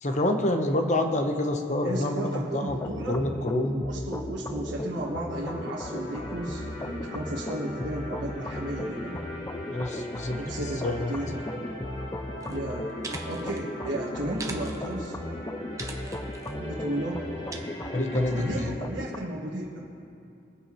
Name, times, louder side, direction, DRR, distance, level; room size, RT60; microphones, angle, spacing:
voice 1, 0.0-3.8 9.7-10.4 10.8-11.1 17.9-18.7, left 1 dB, 40° left, 5 dB, 1.0 m, -27 dB
voice 2, 1.8-3.2 3.7-9.2 10.4-11.7 12.5-12.9 13.3-15.1 16.6-17.3 18.4-19.8, right 1 dB, 75° right, -6 dB, 1.4 m, -34 dB
sound 1, 2.7-19.2, left 1 dB, 15° left, 0.3 m, -36 dB
sound 2, 4.9-18.6, equal, 70° left, 2.3 m, -41 dB
sound 3, 12.4-12.6 12.9-13.6 14.3-15.2 15.8-16.5 17.5-17.6, right 3 dB, 20° right, 0.9 m, -40 dB
22.0 x 9.6 x 3.1 m, 2.7 s
head